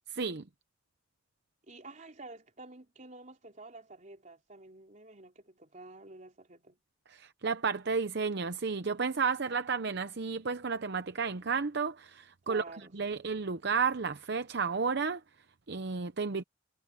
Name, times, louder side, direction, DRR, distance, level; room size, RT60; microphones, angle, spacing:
voice 1, 0.1-0.5 7.1-16.4, right 5 dB, 60° right, 0.8 m, -32 dB
voice 2, 1.7-6.8 12.5-12.9, right 2 dB, 40° right, 3.7 m, -50 dB
head